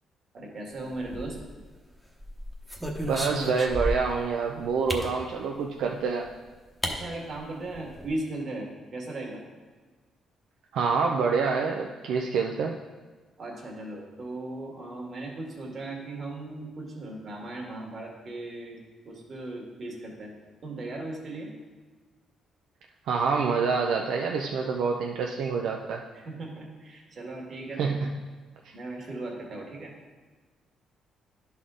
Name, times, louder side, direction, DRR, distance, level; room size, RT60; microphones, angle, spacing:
voice 1, 0.3-1.4 6.8-9.4 13.4-20.3 20.6-21.5 26.1-28.1 28.7-29.9, right 2 dB, 50° right, -1 dB, 1.8 m, -37 dB
sound 1, 1.0-1.7 2.2-4.2 4.9-5.1 6.2-6.3 6.8-7.0 7.3-7.4 7.7-8.1, equal, 5° right, 1.0 m, -33 dB
voice 2, 3.1-6.3 10.7-12.8 23.1-26.0 27.8-28.1 28.6-28.7, right 5 dB, 80° right, 1 dB, 0.5 m, -27 dB
11.0 x 4.2 x 3.7 m, 1.4 s
cardioid pair, 90°, 0 cm